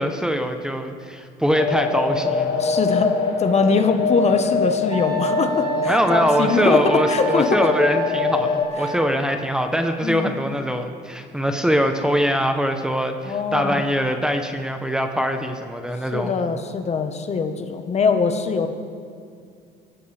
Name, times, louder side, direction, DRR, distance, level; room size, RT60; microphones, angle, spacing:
voice 1, 0.0-2.5 5.9-16.4, equal, 5° right, 5 dB, 1.1 m, -22 dB
sound 1, 1.5-8.6, left 4 dB, 60° left, 2.2 m, -24 dB
voice 2, 2.6-7.6 8.8-8.9 10.0-10.4 13.2-13.8 16.1-18.7, left 5 dB, 40° left, 6 dB, 1.4 m, -22 dB
Wind instrument woodwind instrument, 4.9-9.1, right 5 dB, 35° right, 2.3 m, -31 dB
24.0 x 15.0 x 3.6 m, 2.3 s
cardioid pair, 110°, 17 cm